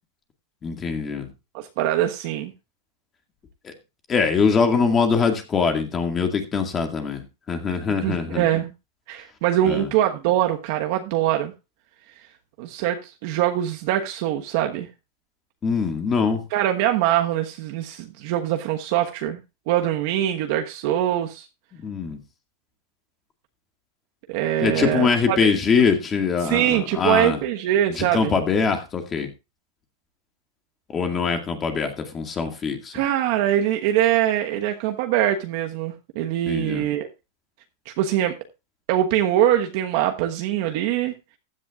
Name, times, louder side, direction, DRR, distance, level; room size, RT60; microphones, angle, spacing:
voice 1, 0.6-1.3 3.6-3.7 4.1-8.5 9.6-9.9 15.6-16.4 21.7-22.2 24.6-27.4 27.9-29.3 30.9-33.0 36.5-36.9, left 5 dB, 20° left, 2.0 m, -23 dB
voice 2, 1.5-2.5 8.0-8.7 9.1-11.5 12.6-14.9 16.5-19.4 19.7-21.5 24.3-25.4 26.4-28.3 32.9-37.1 37.8-38.4 38.9-41.1, right 12 dB, 55° right, 1.2 m, -23 dB
15.0 x 10.5 x 2.4 m
supercardioid pair, 150°, 0 cm